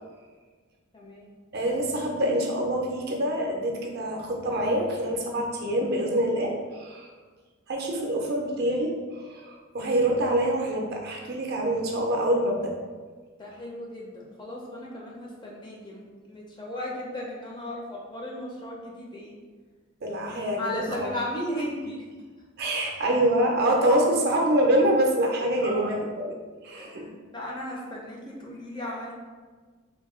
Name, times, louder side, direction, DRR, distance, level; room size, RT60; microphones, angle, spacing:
voice 1, 0.9-1.3 13.4-19.3 20.6-22.0 25.5-26.1 26.7-29.1, left 1 dB, 20° left, -3 dB, 0.4 m, -36 dB
voice 2, 1.5-7.1 7.7-12.7 20.0-21.1 22.6-26.3 26.6-27.1, right 1 dB, 50° right, 0 dB, 0.4 m, -25 dB
2.7 x 2.2 x 3.0 m, 1.5 s
head